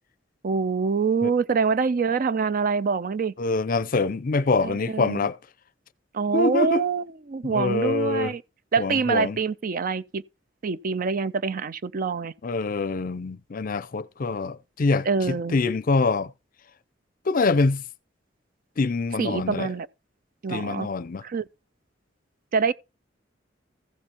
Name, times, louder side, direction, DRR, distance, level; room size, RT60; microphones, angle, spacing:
voice 1, 0.4-3.3 4.6-5.3 6.1-8.4 8.7-10.2 10.6-12.3 15.0-15.6 19.2-19.9 20.4-20.9 21.2-21.5 22.5-22.7, right 5 dB, 50° right, 0.5 m, -25 dB
voice 2, 3.4-5.4 6.3-6.9 7.4-8.3 8.8-9.4 12.4-16.3 17.3-17.8 18.8-19.7 20.5-21.2, left 3 dB, 50° left, 0.5 m, -25 dB
15.0 x 7.0 x 2.9 m
head